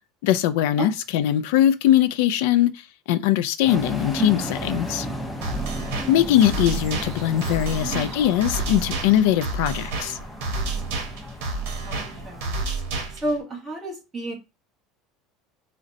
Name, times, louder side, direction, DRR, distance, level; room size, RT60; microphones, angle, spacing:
voice 1, 0.2-4.4 4.6-5.1 6.1-10.2, left 11 dB, 75° left, 0.3 m, -21 dB
sound 1, 3.7-12.4, equal, 5° left, 0.5 m, -35 dB
voice 2, 4.2-4.5 7.8-8.1 11.8-12.6 13.2-14.3, right 2 dB, 15° right, 1.1 m, -31 dB
sound 2, 4.3-9.4, right 5 dB, 50° right, 0.6 m, -44 dB
sound 3, 5.4-13.4, right 3 dB, 75° right, 0.9 m, -30 dB
3.9 x 2.1 x 2.5 m
cardioid pair, 165°, 0 cm